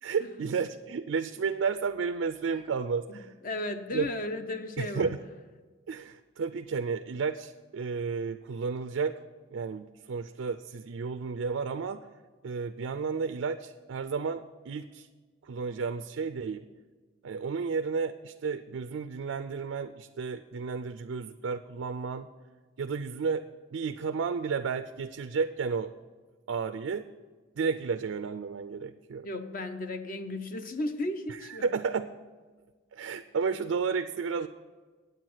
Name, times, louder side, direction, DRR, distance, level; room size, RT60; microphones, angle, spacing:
voice 1, 0.0-3.3 3.9-4.1 4.8-5.2 5.9-9.1 9.5-12.1 12.4-15.1 15.4-16.7 17.2-22.3 22.8-23.5 23.7-25.9 26.5-27.1 27.6-29.3 31.6-32.1 32.9-34.5, right 5 dB, 90° right, 9 dB, 0.4 m, -32 dB
voice 2, 3.1-5.1 29.2-31.6, left 2 dB, 45° left, 8 dB, 0.6 m, -35 dB
9.3 x 8.0 x 6.1 m, 1.4 s
head